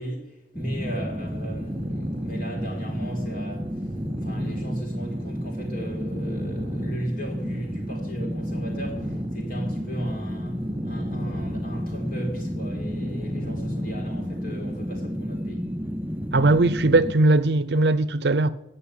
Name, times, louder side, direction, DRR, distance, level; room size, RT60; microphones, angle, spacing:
voice 1, 0.0-3.7 4.2-15.7, right 1 dB, 50° left, 4.3 m, -36 dB
sound 1, 0.5-17.1, equal, 10° right, 0.4 m, -32 dB
sound 2, 1.2-15.0, equal, 45° right, 2.6 m, -37 dB
voice 2, 16.3-18.5, right 2 dB, 65° right, 0.6 m, -19 dB
16.5 x 5.6 x 9.6 m
head